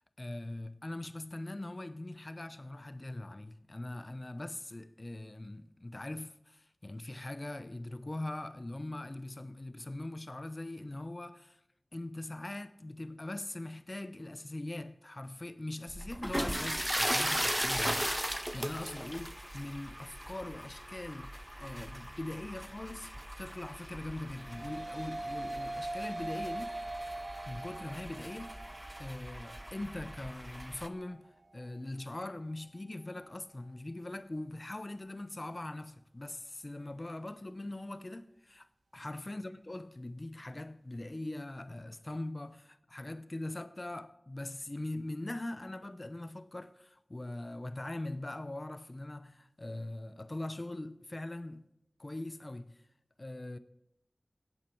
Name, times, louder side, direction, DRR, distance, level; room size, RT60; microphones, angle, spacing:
voice 1, 0.2-11.6 11.9-18.2 18.5-23.1 23.4-26.8 27.5-28.7 29.0-38.7 38.9-51.6 52.0-52.8 53.2-53.6, left 1 dB, 40° left, 0.6 m, -41 dB
sound 1, 15.9-30.9, equal, 5° right, 0.6 m, -38 dB
sound 2, 24.1-33.3, right 2 dB, 80° right, 1.1 m, -43 dB
16.5 x 8.1 x 4.6 m
wide cardioid pair, 60°, 0 cm